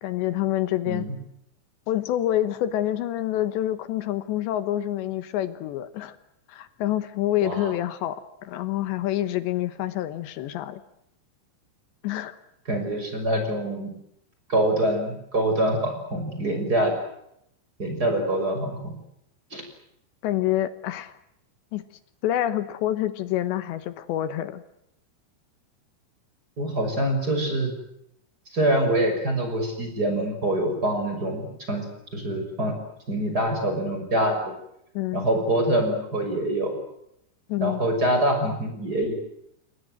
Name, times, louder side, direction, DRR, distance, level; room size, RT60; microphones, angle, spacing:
voice 1, 0.0-1.1 1.9-6.2 6.5-8.2 8.4-10.8 12.0-12.4 16.4-16.6 20.2-21.2 21.7-21.8 22.2-24.6 34.9-35.3 37.5-37.8, left 13 dB, 75° left, 12 dB, 3.3 m, -27 dB
voice 2, 7.4-7.7 12.7-13.9 14.5-16.9 17.8-18.9 19.5-19.6 26.6-27.7 28.5-32.8 33.1-34.4 35.1-36.7 37.6-39.1, right 1 dB, 20° right, 5 dB, 6.5 m, -25 dB
29.5 x 21.5 x 7.9 m, 0.78 s
omnidirectional pair, 5.2 m